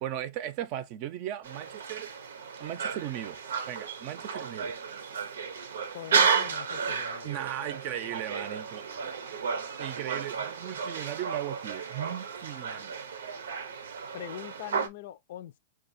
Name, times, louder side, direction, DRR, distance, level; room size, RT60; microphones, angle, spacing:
voice 1, 0.0-2.1 2.6-3.4 3.7-4.7 7.2-9.2 9.8-13.0, right 12 dB, 45° right, 0.6 m, -37 dB
sound 1, 1.4-14.9, right 6 dB, 90° right, 0.7 m, -33 dB
voice 2, 5.9-7.7 8.0-8.2 14.1-15.6, left 12 dB, 65° left, 0.5 m, -43 dB
4.8 x 2.4 x 2.5 m
hypercardioid pair, 140°, 0 cm